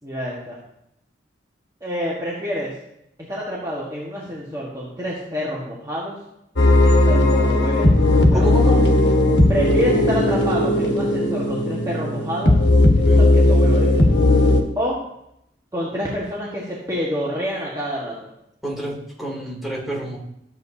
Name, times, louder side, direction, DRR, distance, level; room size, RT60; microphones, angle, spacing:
voice 1, 0.0-0.6 1.8-2.7 3.3-6.2 6.8-8.8 9.5-12.5 13.2-14.1 14.8-15.0 15.7-18.2, equal, 20° right, -5 dB, 1.4 m, -28 dB
sound 1, 6.6-14.6, left 1 dB, 75° left, 1.3 m, -16 dB
voice 2, 8.3-8.8 13.0-13.3 18.6-20.2, right 1 dB, ahead, -5 dB, 2.7 m, -28 dB
13.5 x 7.7 x 2.7 m, 0.80 s
head